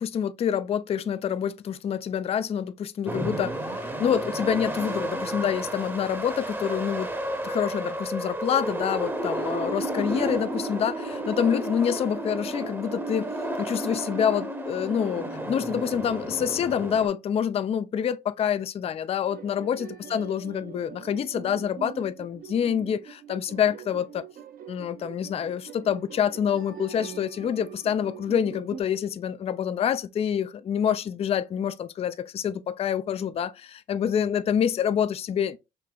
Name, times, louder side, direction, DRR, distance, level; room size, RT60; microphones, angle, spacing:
voice 1, 0.0-7.1 7.4-24.2 24.7-35.6, left 8 dB, 30° left, 0.3 m, -27 dB
sound 1, 3.1-17.1, right 1 dB, 10° right, 0.8 m, -32 dB
sound 2, 19.2-28.8, right 8 dB, 45° right, 0.6 m, -43 dB
5.0 x 2.8 x 2.3 m
supercardioid pair, 80°, 21 cm